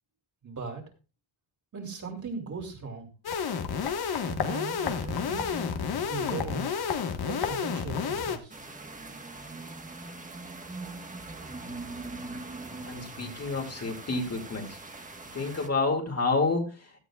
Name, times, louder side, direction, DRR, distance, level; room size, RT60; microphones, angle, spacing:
voice 1, 0.4-0.8 1.7-3.1 4.2-5.7 6.1-6.8 7.2-8.6, right 4 dB, 35° right, 0 dB, 3.2 m, -38 dB
sound 1, 3.2-8.4, left 6 dB, 50° left, 1.6 m, -30 dB
sound 2, 8.5-15.7, right 3 dB, 15° right, 1.4 m, -42 dB
voice 2, 12.8-14.8 15.2-17.0, left 3 dB, 30° left, 1 dB, 2.5 m, -29 dB
16.5 x 12.0 x 2.4 m, 0.33 s
cardioid pair, 135°, 48 cm